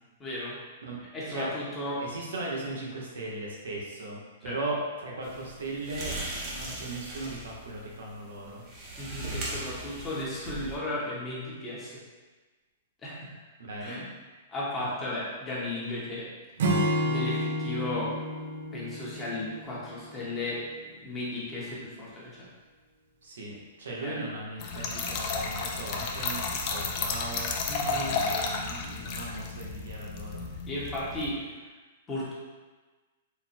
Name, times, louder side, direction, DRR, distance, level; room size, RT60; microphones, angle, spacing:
voice 1, 0.2-0.6 1.1-2.0 4.4-4.6 9.0-12.0 13.0-13.4 13.8-14.0 14.5-16.3 17.0-18.1 18.7-22.5 24.0-24.2 27.7-28.2 30.7-31.7 32.1-32.3, left 1 dB, 15° left, -7 dB, 1.0 m, -35 dB
voice 2, 2.0-8.6 13.6-14.0 23.2-27.5 27.8-30.5, right 2 dB, 85° right, -3 dB, 1.0 m, -37 dB
sound 1, 5.2-10.8, right 1 dB, 30° right, 0.9 m, -39 dB
Acoustic guitar / Strum, 16.6-20.1, equal, 65° right, 0.7 m, -30 dB
Trickle dribble / Fill (with liquid), 24.6-31.3, left 4 dB, 35° left, 0.5 m, -32 dB
4.0 x 2.1 x 4.2 m, 1.3 s
hypercardioid pair, 150°, 0 cm